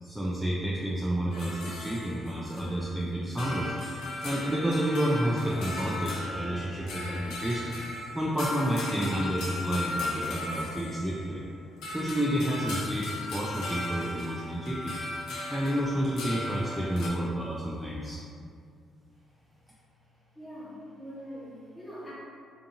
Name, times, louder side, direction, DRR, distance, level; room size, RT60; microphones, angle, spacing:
voice 1, 0.0-3.7 4.2-7.7 8.1-11.4 11.9-15.0 15.5-18.2, equal, 5° right, -5 dB, 0.3 m, -30 dB
sound 1, 1.3-2.9 3.2-11.5 11.8-17.1, left 2 dB, 85° left, 0.5 m, -37 dB
voice 2, 20.4-22.1, equal, 15° left, -8 dB, 1.0 m, -43 dB
2.7 x 2.5 x 2.6 m, 2.3 s
cardioid pair, 90°, 0 cm